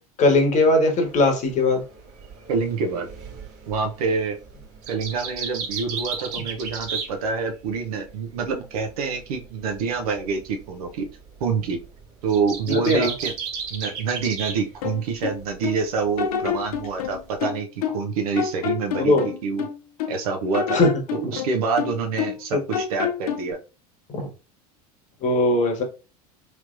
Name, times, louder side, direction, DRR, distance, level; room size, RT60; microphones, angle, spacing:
voice 1, 0.2-1.8 12.8-13.1 19.0-19.2 20.7-20.9 22.5-22.6 24.1-24.3 25.2-25.8, left 2 dB, 40° left, 1.1 m, -19 dB
sound 1, 1.1-7.8 8.1-14.6 14.9-15.6 15.9-17.4, right 6 dB, 55° right, 1.2 m, -35 dB
voice 2, 2.5-3.1 3.7-4.4 4.9-11.1 11.4-11.8 12.2-13.3 13.7-19.7 20.1-20.8 21.1-23.6, right 5 dB, 70° right, 0.7 m, -26 dB
sound 2, 14.8-15.8 16.2-18.1 18.4-20.2 20.5-22.5 22.7-23.5, left 8 dB, 70° left, 0.5 m, -28 dB
3.2 x 3.1 x 2.5 m
hypercardioid pair, 80°, 20 cm